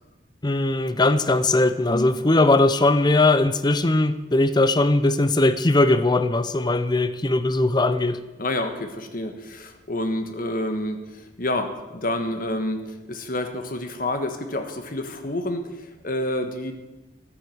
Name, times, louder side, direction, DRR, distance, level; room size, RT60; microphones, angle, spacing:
voice 1, 0.4-8.2, left 2 dB, 20° left, 12 dB, 0.7 m, -20 dB
voice 2, 8.4-16.7, left 1 dB, 50° left, 7 dB, 1.5 m, -29 dB
14.0 x 9.6 x 7.9 m, 1.1 s
head